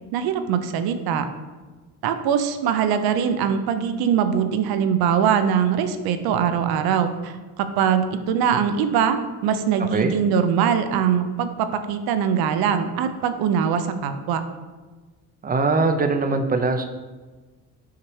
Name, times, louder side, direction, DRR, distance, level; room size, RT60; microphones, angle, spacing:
voice 1, 0.1-1.3 2.0-14.4, right 7 dB, 75° right, 9 dB, 0.5 m, -22 dB
voice 2, 15.4-16.8, right 3 dB, 25° right, 6 dB, 0.4 m, -21 dB
5.7 x 2.8 x 3.1 m, 1.3 s
supercardioid pair, 80°, 38 cm